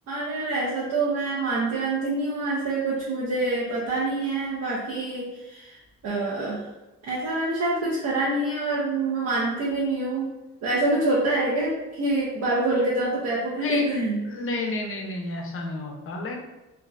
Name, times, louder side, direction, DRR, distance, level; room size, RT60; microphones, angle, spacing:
voice 1, 0.1-5.8 6.0-6.7 7.1-10.3 10.6-14.2, right 2 dB, 55° right, -6 dB, 0.6 m, -26 dB
voice 2, 13.5-13.9 14.2-16.4, left 2 dB, 45° left, 2 dB, 0.5 m, -31 dB
2.6 x 2.0 x 2.3 m, 1.0 s
cardioid pair, 90°, 30 cm